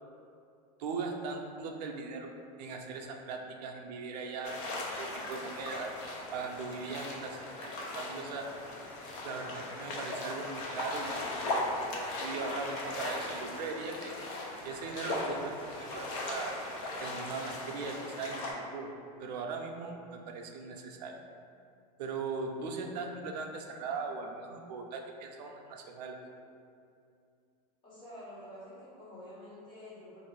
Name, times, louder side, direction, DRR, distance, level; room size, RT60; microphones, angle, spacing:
voice 1, 0.8-2.3 2.6-5.9 6.3-8.5 9.2-11.6 11.9-14.1 14.6-16.6 17.0-18.9 19.2-21.2 22.0-26.2, right 4 dB, 85° right, 2 dB, 0.4 m, -39 dB
sound 1, 4.4-18.5, left 2 dB, 50° left, 0.5 m, -38 dB
voice 2, 27.8-30.2, left 1 dB, 25° left, -10 dB, 1.1 m, -48 dB
2.5 x 2.4 x 3.2 m, 2.5 s
supercardioid pair, 155°, 20 cm